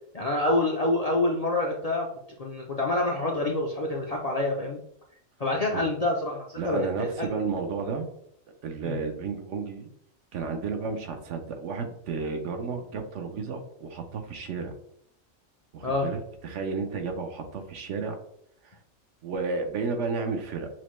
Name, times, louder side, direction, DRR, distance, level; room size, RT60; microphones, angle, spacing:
voice 1, 0.1-2.1 2.4-4.8 5.4-7.3 8.8-9.0 15.8-16.0, left 2 dB, 55° left, -1 dB, 0.4 m, -27 dB
voice 2, 6.6-8.1 8.6-9.9 10.3-14.7 15.7-18.2 18.6-18.8 19.2-20.7, right 4 dB, 70° right, 5 dB, 0.9 m, -32 dB
5.9 x 2.1 x 3.1 m, 0.68 s
omnidirectional pair, 1.4 m